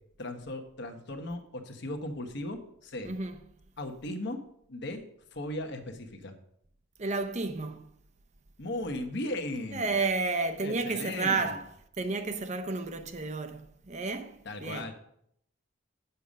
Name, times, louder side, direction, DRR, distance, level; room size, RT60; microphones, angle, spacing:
voice 1, 0.2-3.1 3.8-4.4 4.7-5.0 5.3-6.3 8.6-9.9 10.6-11.6 14.4-14.9, left 1 dB, 55° left, 1.2 m, -37 dB
voice 2, 3.0-3.4 7.0-7.9 9.7-14.9, right 3 dB, 35° right, 0.6 m, -32 dB
8.4 x 6.9 x 5.2 m
head